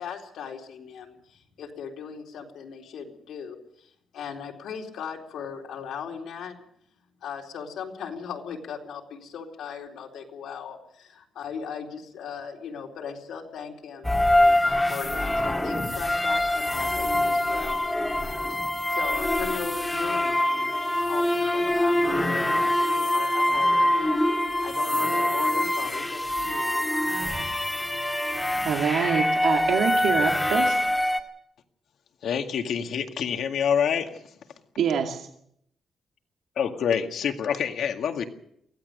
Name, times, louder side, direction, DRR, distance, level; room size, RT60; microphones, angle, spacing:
voice 1, 0.0-6.6 7.2-14.1 14.6-17.8 18.9-20.7 21.0-27.1, left 7 dB, 85° left, 0 dB, 4.0 m, -38 dB
sound 1, 14.0-31.2, left 1 dB, 10° left, 1.8 m, -24 dB
voice 2, 28.6-30.8 34.8-35.3, right 7 dB, 85° right, 3 dB, 2.2 m, -25 dB
voice 3, 32.2-34.2 36.6-38.2, left 7 dB, 70° left, 5 dB, 2.0 m, -26 dB
24.0 x 16.0 x 6.7 m, 0.71 s
cardioid pair, 145°, 0 cm